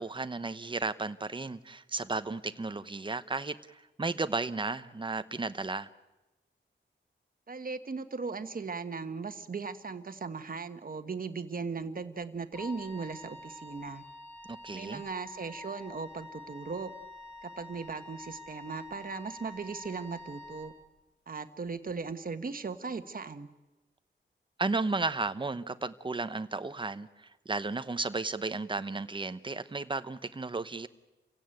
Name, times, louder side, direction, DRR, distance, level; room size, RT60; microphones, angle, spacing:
voice 1, 0.0-5.9 14.5-15.0 24.6-30.9, right 3 dB, 25° right, 12 dB, 0.9 m, -34 dB
voice 2, 7.5-14.0 14.7-16.9 17.4-20.7 21.3-23.5, right 4 dB, 45° right, 9 dB, 1.4 m, -38 dB
Wind instrument woodwind instrument, 12.5-20.7, left 2 dB, 5° left, 7.7 m, -47 dB
29.0 x 16.5 x 9.1 m, 1.1 s
wide cardioid pair, 120°, 20 cm